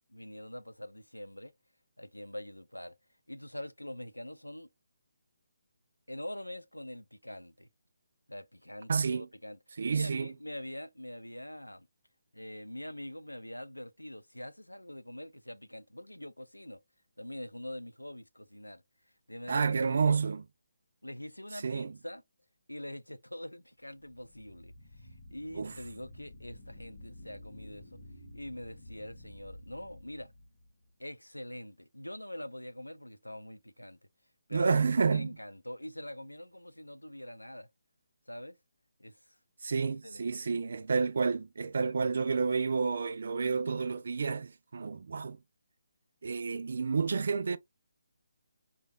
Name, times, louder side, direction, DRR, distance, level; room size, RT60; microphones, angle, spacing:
voice 1, 0.1-1.5 2.0-3.0 3.3-4.7 6.1-7.7 8.3-11.9 12.3-16.8 17.2-18.8 19.3-20.2 21.0-22.2 22.7-28.0 28.3-30.3 31.0-34.0 34.5-37.7 38.3-38.6 39.0-39.4 40.0-40.7, left 1 dB, 90° left, 0.4 m, -44 dB
voice 2, 8.9-9.3 9.8-10.3 19.5-20.4 21.6-21.9 25.5-25.7 34.5-35.3 39.6-45.4 46.2-47.6, right 5 dB, 55° right, 0.3 m, -30 dB
sound 1, 23.9-30.9, left 1 dB, 40° left, 0.9 m, -51 dB
3.3 x 2.3 x 2.3 m
figure-of-eight pair, 145°, 0 cm